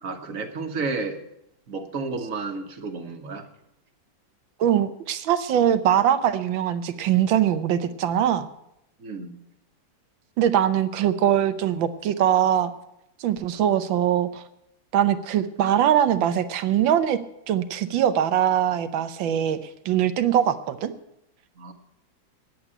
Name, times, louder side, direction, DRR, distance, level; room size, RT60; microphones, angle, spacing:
voice 1, 0.0-1.2 1.7-3.5 9.0-9.4 21.6-21.7, right 4 dB, 45° right, 5 dB, 1.6 m, -31 dB
voice 2, 4.6-8.5 10.4-12.7 13.2-14.4 14.9-17.2 17.5-19.6 19.8-20.9, right 10 dB, 75° right, 11 dB, 1.6 m, -22 dB
10.0 x 8.2 x 9.7 m, 0.81 s
omnidirectional pair, 2.1 m